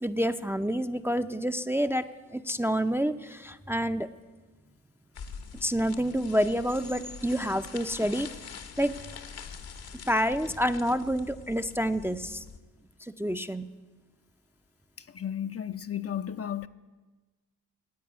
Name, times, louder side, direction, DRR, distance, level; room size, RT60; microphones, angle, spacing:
voice 1, 0.0-2.1 2.3-4.1 5.6-8.3 8.8-8.9 10.1-12.4 13.0-13.7, equal, 5° right, 0.6 m, -28 dB
sound 1, 5.1-12.6, left 6 dB, 65° left, 1.2 m, -44 dB
voice 2, 15.1-16.7, left 9 dB, 35° left, 0.6 m, -33 dB
10.5 x 8.5 x 9.6 m
supercardioid pair, 45°, 40 cm